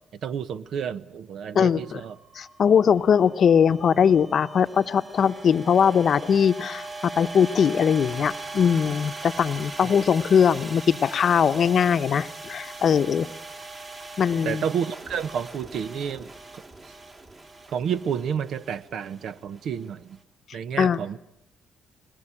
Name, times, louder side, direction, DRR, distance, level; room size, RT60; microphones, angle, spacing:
voice 1, 0.2-2.2 14.4-16.6 17.7-20.2 20.5-21.2, right 7 dB, 70° right, 14 dB, 0.9 m, -30 dB
voice 2, 1.5-2.0 2.3-6.9 7.2-13.3 14.2-14.6 20.8-21.0, left 7 dB, 55° left, 12 dB, 0.8 m, -21 dB
sound 1, 1.8-20.1, right 3 dB, 35° right, 2.7 m, -40 dB
21.0 x 20.0 x 10.0 m, 0.83 s
cardioid pair, 90°, 0 cm